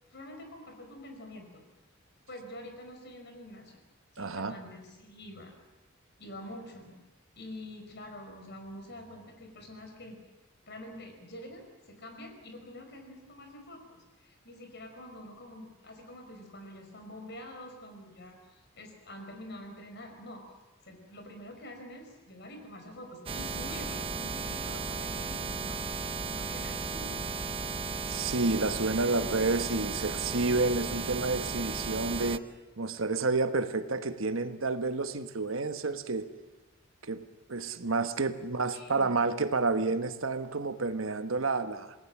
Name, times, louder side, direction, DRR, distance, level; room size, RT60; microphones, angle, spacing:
voice 1, 0.1-1.6 2.3-3.8 4.1-5.5 6.2-7.0 7.3-10.2 10.7-20.4 20.8-25.8 26.3-27.3 38.7-39.1, left 1 dB, 55° left, 4 dB, 5.2 m, -46 dB
voice 2, 4.2-4.5 28.1-32.4 32.8-36.3 37.0-37.2 37.5-41.9, right 3 dB, 75° right, 10 dB, 1.3 m, -30 dB
sound 1, 23.3-32.4, right 4 dB, 25° right, 0.7 m, -35 dB
28.0 x 19.5 x 7.4 m, 1.0 s
head